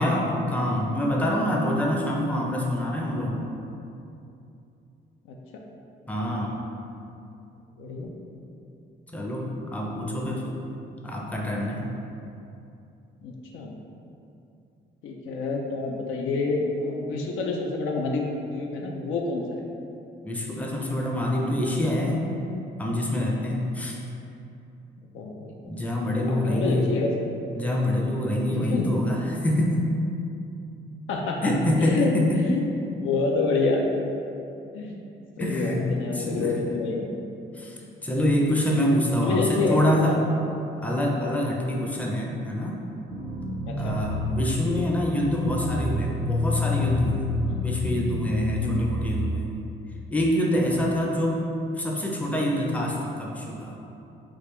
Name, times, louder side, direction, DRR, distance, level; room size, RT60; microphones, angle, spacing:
voice 1, 0.0-3.4 6.1-6.6 9.1-10.5 11.0-11.8 20.2-22.3 22.8-24.0 25.6-26.8 27.5-29.8 31.4-32.4 35.4-35.9 36.1-36.5 37.5-40.2 40.8-42.8 43.8-47.3 47.6-49.5 50.1-51.5 51.7-53.8, left 1 dB, 5° left, -2 dB, 0.5 m, -26 dB
voice 2, 5.3-5.6 7.8-8.1 10.4-10.5 13.2-13.8 15.0-19.6 25.1-25.5 26.3-27.1 28.5-29.0 31.1-31.5 31.8-33.9 34.7-35.0 35.4-37.1 39.2-39.9 40.9-41.0 43.7-44.0 47.5-47.6 48.6-48.8, left 3 dB, 80° left, 0 dB, 0.5 m, -28 dB
sound 1, 43.1-49.3, left 2 dB, 45° right, 0.5 m, -28 dB
3.5 x 2.4 x 3.1 m, 2.7 s
cardioid pair, 90°, 20 cm